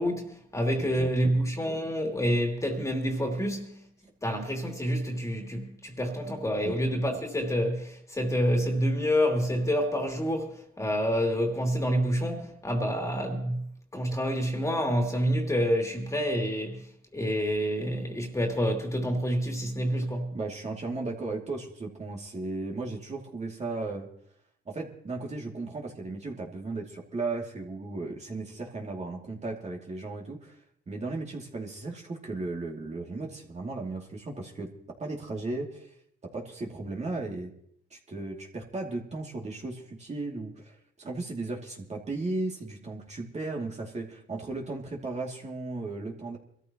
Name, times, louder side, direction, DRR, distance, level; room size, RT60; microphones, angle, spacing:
voice 1, 0.0-3.8 4.2-13.6 13.9-16.9 17.1-20.3, equal, 15° left, 2.8 m, -28 dB
voice 2, 0.8-1.4 6.6-6.8 20.3-24.1 24.7-30.6 30.9-34.7 35.0-35.9 36.3-37.5 37.9-46.4, right 3 dB, 35° right, 2.6 m, -35 dB
24.0 x 14.0 x 3.0 m
cardioid pair, 90°, 20 cm